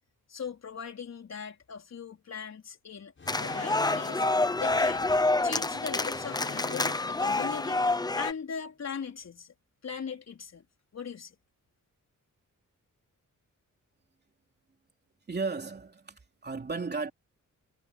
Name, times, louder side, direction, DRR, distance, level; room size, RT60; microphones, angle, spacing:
voice 1, 0.3-5.1 5.4-9.5 9.8-10.6 10.9-11.3, left 6 dB, 50° left, 4.4 m, -40 dB
sound 1, 3.2-5.4 6.1-8.3, left 4 dB, 35° left, 7.2 m, -45 dB
sound 2, 3.3-8.3, left 2 dB, 10° left, 0.7 m, -27 dB
voice 2, 15.3-17.1, right 4 dB, 30° right, 3.3 m, -34 dB
wide cardioid pair, 175°, 33 cm